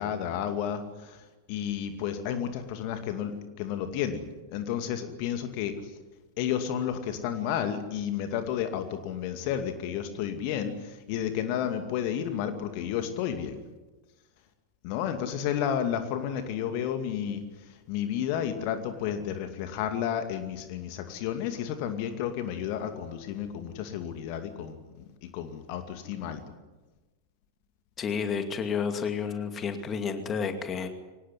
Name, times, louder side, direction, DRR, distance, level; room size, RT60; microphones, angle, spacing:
voice 1, 0.0-5.7 6.4-13.6 14.8-26.4, left 9 dB, 45° left, 7 dB, 2.4 m, -32 dB
voice 2, 28.0-30.9, left 6 dB, 25° left, 7 dB, 2.4 m, -30 dB
24.5 x 19.5 x 10.0 m, 1.2 s
figure-of-eight pair, 90°, 0 cm